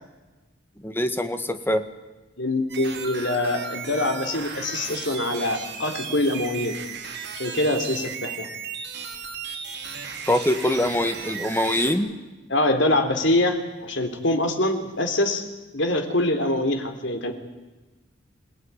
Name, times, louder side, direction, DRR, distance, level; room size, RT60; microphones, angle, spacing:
voice 1, 0.8-1.8 10.3-12.1, left 1 dB, 10° left, 8 dB, 1.6 m, -23 dB
voice 2, 2.4-6.8 7.4-8.5 12.5-15.4 15.7-17.3, left 1 dB, 65° left, 6 dB, 3.5 m, -24 dB
sound 1, 2.7-11.9, right 6 dB, 60° right, 4.3 m, -35 dB
27.0 x 18.0 x 9.8 m, 1.1 s
head